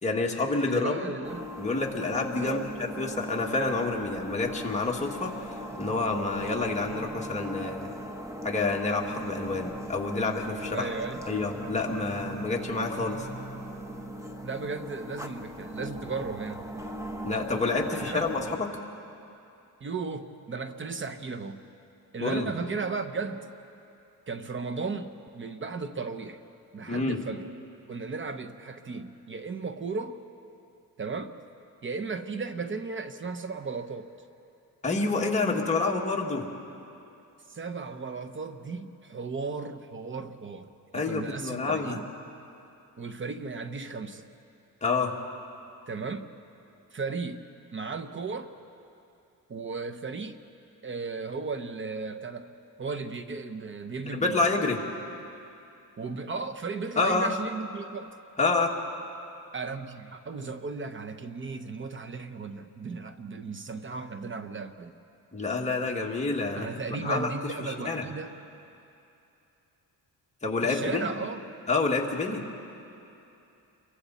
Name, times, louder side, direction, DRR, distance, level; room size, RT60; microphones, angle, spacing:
voice 1, 0.0-1.0 1.6-5.3 5.8-7.9 8.4-10.9 11.3-13.3 17.2-18.7 22.2-22.5 26.9-27.2 34.8-36.5 40.9-42.0 44.8-45.2 54.1-54.8 57.0-57.3 58.4-58.7 65.3-67.3 67.6-68.0 70.4-71.1 71.7-72.4, left 3 dB, 20° left, -1 dB, 2.0 m, -28 dB
voice 2, 0.7-1.5 2.4-2.7 10.7-11.5 14.4-16.6 17.9-18.2 19.8-21.6 22.1-23.5 24.3-26.4 26.7-27.5 27.9-30.2 31.0-31.4 31.8-34.1 37.5-42.1 43.0-44.3 45.9-46.3 46.9-47.4 47.7-48.5 49.5-50.4 50.8-52.5 52.8-54.5 56.0-58.2 59.5-64.9 66.6-68.3 70.6-71.4, right 4 dB, 30° right, 9 dB, 0.9 m, -35 dB
sound 1, 1.2-18.6, equal, 10° right, 1.2 m, -39 dB
28.0 x 23.5 x 4.2 m, 2.8 s
cardioid pair, 130°, 38 cm